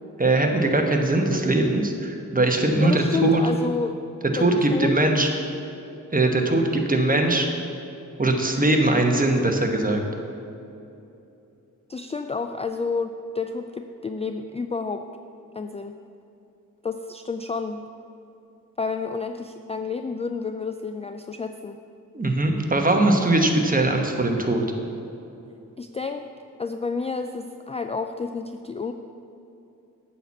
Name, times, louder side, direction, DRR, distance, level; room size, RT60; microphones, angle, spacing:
voice 1, 0.2-3.4 4.3-5.3 6.1-7.5 8.2-10.0 22.1-24.6, right 2 dB, 25° right, 3 dB, 1.2 m, -21 dB
voice 2, 2.8-4.0 4.3-4.9 11.9-15.0 15.5-16.0 16.8-17.8 18.8-21.8 25.8-26.2 26.6-28.9, left 4 dB, 20° left, 7 dB, 0.3 m, -30 dB
8.9 x 4.3 x 7.3 m, 2.8 s
cardioid pair, 55°, 34 cm